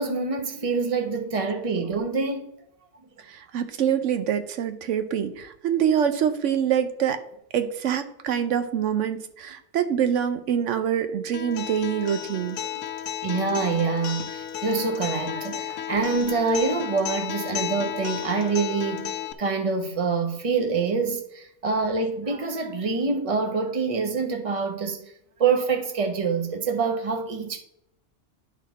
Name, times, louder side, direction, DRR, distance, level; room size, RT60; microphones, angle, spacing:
voice 1, 0.0-2.5 12.7-12.8 13.2-25.0 25.4-27.6, right 4 dB, 30° right, 1.0 m, -26 dB
voice 2, 3.2-7.2 7.5-12.6, right 8 dB, 80° right, 1.0 m, -25 dB
Acoustic guitar, 11.3-19.3, left 10 dB, 85° left, 1.0 m, -33 dB
11.0 x 4.2 x 4.1 m
omnidirectional pair, 1.2 m